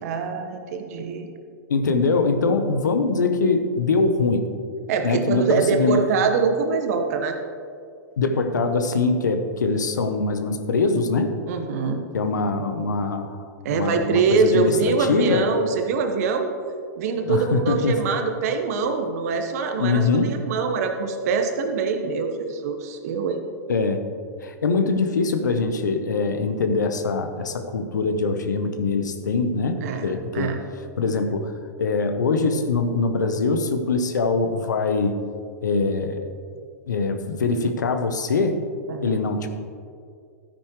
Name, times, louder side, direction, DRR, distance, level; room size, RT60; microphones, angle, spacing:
voice 1, 0.0-1.3 4.9-7.4 11.5-12.0 13.6-16.5 17.0-23.4 29.8-30.6 38.9-39.2, right 5 dB, 60° right, 5 dB, 1.3 m, -24 dB
voice 2, 1.7-4.5 5.0-6.0 8.2-11.4 12.1-13.4 13.7-15.5 17.2-18.0 19.8-20.4 23.7-24.1 24.4-30.5 31.0-31.5 31.8-35.2 35.6-36.2 36.9-38.6 39.0-39.5, left 3 dB, 80° left, 8 dB, 1.0 m, -23 dB
13.0 x 9.7 x 3.2 m, 2.3 s
hypercardioid pair, 115°, 10 cm